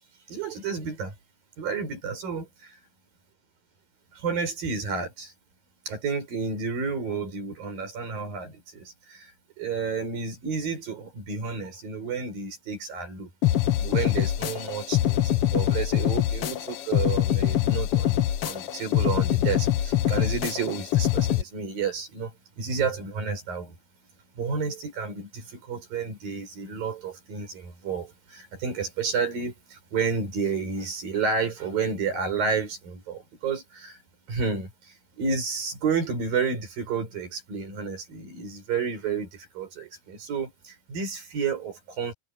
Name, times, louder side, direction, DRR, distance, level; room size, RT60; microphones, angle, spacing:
voice 1, 0.3-1.1 1.6-2.8 4.1-5.3 5.9-9.3 9.6-13.3 13.8-23.8 24.4-34.0 34.3-42.1, right 5 dB, 85° right, 7.5 m, -31 dB
sound 1, 13.4-21.4, left 12 dB, 80° left, 1.3 m, -24 dB
omnidirectional pair, 3.9 m